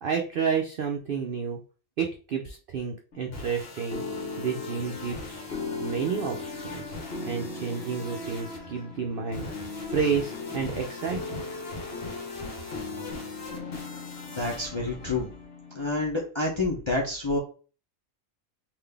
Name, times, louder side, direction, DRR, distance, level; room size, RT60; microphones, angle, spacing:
voice 1, 0.0-1.6 2.0-4.0 4.4-5.4 5.8-7.0 7.3-11.4, right 6 dB, 65° right, 2 dB, 0.5 m, -30 dB
sound 1, 3.1-15.9, left 3 dB, 50° left, 1.1 m, -37 dB
voice 2, 14.3-15.3 15.7-17.4, left 2 dB, 35° left, -2 dB, 0.5 m, -28 dB
3.8 x 2.5 x 3.3 m, 0.38 s
omnidirectional pair, 1.4 m